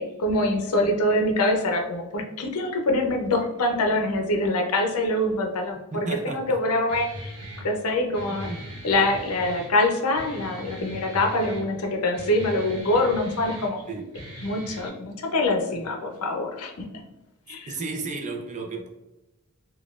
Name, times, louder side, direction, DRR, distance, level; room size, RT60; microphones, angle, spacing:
voice 1, 0.0-7.4 7.6-8.5 8.8-13.8 14.4-16.8 17.5-17.7, left 1 dB, 75° left, 3 dB, 0.6 m, -24 dB
voice 2, 5.9-6.6 8.4-8.7 13.9-14.0 17.7-18.9, right 3 dB, 35° right, 2 dB, 0.5 m, -33 dB
Guitar, 6.9-14.9, equal, 55° right, 1.1 m, -40 dB
3.9 x 2.3 x 2.3 m, 0.97 s
head